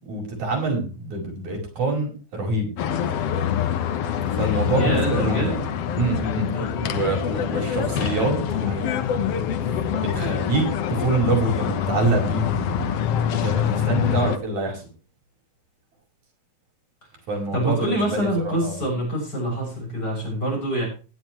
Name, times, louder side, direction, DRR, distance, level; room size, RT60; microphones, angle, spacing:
voice 1, 0.0-2.7 4.3-5.6 5.9-6.5 6.8-8.9 9.8-10.6 11.0-12.9 13.4-14.8 17.3-18.8, right 2 dB, 75° right, 0 dB, 6.6 m, -26 dB
sound 1, 2.8-14.4, left 9 dB, 65° left, 1.9 m, -25 dB
voice 2, 4.7-5.6 6.5-6.9 17.5-20.9, right 1 dB, 30° left, 0 dB, 7.4 m, -25 dB
16.5 x 11.0 x 3.0 m, 0.35 s
omnidirectional pair, 3.3 m